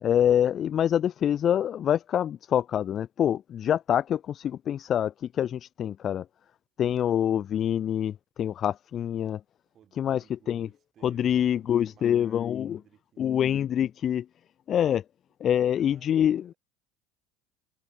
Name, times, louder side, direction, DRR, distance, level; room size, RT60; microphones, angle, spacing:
voice 1, 0.0-6.3 6.8-9.4 10.0-10.7 11.0-12.8 13.2-14.3 14.7-15.0 15.4-16.5, left 10 dB, 40° left, 0.4 m, -26 dB
voice 2, 9.7-13.3 15.4-16.5, right 10 dB, 40° right, 6.1 m, -58 dB
supercardioid pair, 110°, 0 cm